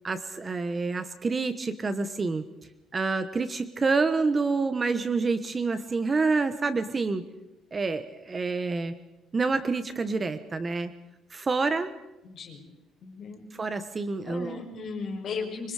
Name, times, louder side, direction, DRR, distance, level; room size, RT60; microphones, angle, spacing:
voice 1, 0.0-2.4 2.9-7.3 7.7-8.9 9.3-10.9 11.3-11.9 13.6-14.6, right 4 dB, 25° right, 11 dB, 1.2 m, -27 dB
voice 2, 12.2-12.6 13.0-13.4 14.2-15.7, left 4 dB, 45° left, 1 dB, 6.4 m, -36 dB
25.5 x 24.5 x 5.0 m, 0.96 s
cardioid pair, 155°, 0 cm